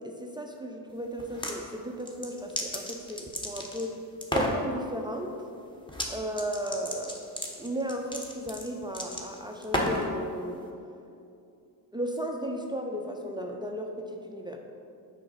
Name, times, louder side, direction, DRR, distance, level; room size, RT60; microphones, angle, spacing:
voice 1, 0.0-4.0 4.3-5.4 6.1-7.3 7.6-10.7 11.9-14.6, equal, 10° right, 2 dB, 0.5 m, -35 dB
sound 1, 1.2-1.6 2.1-3.9 4.2-4.6 5.9-6.1 6.4-10.1, equal, 10° left, 0.9 m, -32 dB
6.6 x 4.7 x 4.0 m, 2.6 s
supercardioid pair, 70°, 46 cm